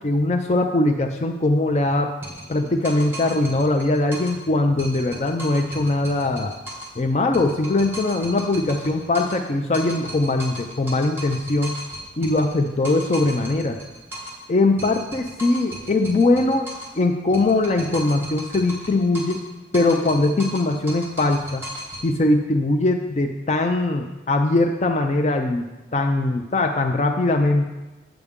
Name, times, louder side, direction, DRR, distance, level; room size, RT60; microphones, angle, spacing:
voice 1, 0.0-2.1 2.5-6.5 7.0-11.7 12.2-13.8 14.5-16.7 17.0-19.4 19.7-21.6 22.0-25.7 25.9-27.7, left 2 dB, 40° left, 4 dB, 0.4 m, -21 dB
sound 1, 2.2-4.4 4.8-7.0 7.3-9.5 9.7-14.4 14.8-17.0 17.3-19.5 19.7-22.1, equal, 10° right, 1.5 m, -37 dB
8.0 x 7.7 x 3.6 m, 1.1 s
head